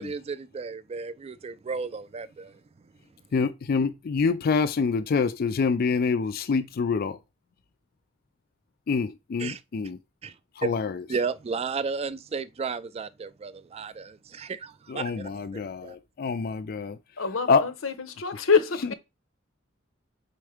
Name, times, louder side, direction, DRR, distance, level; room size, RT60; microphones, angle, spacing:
voice 1, 0.0-2.6 9.4-9.6 10.2-10.3 10.6-10.7 11.1-16.0, right 5 dB, 30° right, 0.3 m, -33 dB
voice 2, 3.3-7.2 8.9-10.0 10.6-11.0 14.9-17.0 17.5-17.7, left 5 dB, 50° left, 0.4 m, -26 dB
voice 3, 17.2-18.9, left 5 dB, 80° left, 0.8 m, -26 dB
4.5 x 4.3 x 4.9 m
head